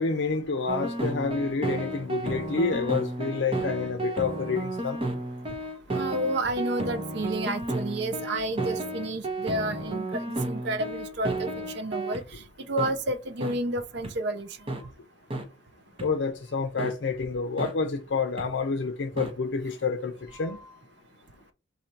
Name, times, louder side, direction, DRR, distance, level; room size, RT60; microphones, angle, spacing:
voice 1, 0.0-5.0 16.0-20.6, left 4 dB, 65° left, 0.5 m, -28 dB
sound 1, 0.7-12.2 12.8-12.9 13.4-13.5 14.0-14.1 14.7-14.8 15.3-15.4 16.0-16.1 16.8-16.9 17.6-17.7 18.4-18.5 19.2-19.3, right 2 dB, 30° right, 0.8 m, -32 dB
voice 2, 5.9-12.2 12.7-14.5 20.4-20.6, right 1 dB, 60° right, 0.6 m, -30 dB
4.1 x 2.7 x 4.4 m
head